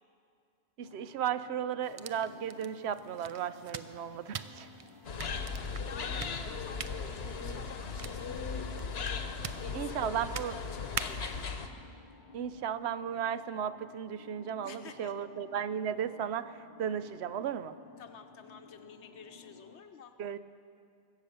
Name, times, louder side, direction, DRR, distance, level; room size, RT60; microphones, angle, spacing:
sound 1, 0.8-19.8, left 5 dB, 50° left, 0.8 m, -55 dB
voice 1, 0.8-4.7 9.7-10.6 12.3-17.7 20.2-20.4, right 9 dB, 75° right, 13 dB, 0.8 m, -35 dB
sound 2, 1.8-11.4, right 6 dB, 45° right, 0.4 m, -45 dB
voice 2, 4.1-5.1 5.3-11.6 14.6-15.2 18.0-20.1, left 6 dB, 90° left, 7 dB, 1.2 m, -52 dB
sound 3, 5.0-11.7, left 5 dB, 70° left, 1.1 m, -37 dB
22.5 x 8.4 x 6.7 m, 2.4 s
omnidirectional pair, 1.1 m